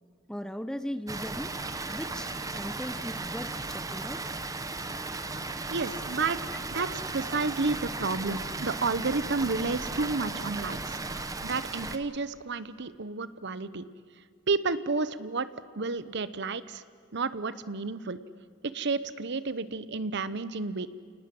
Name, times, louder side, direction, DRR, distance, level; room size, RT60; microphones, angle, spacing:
voice 1, 0.3-1.6 1.9-4.2, equal, 5° left, 11 dB, 0.6 m, -38 dB
Water, 1.1-12.0, right 3 dB, 20° right, 1.1 m, -36 dB
voice 2, 5.7-6.4 6.7-13.8 14.5-15.5 15.8-16.8 17.1-18.2 18.7-20.9, right 4 dB, 60° right, 15 dB, 1.0 m, -31 dB
29.0 x 19.5 x 7.9 m, 2.2 s
head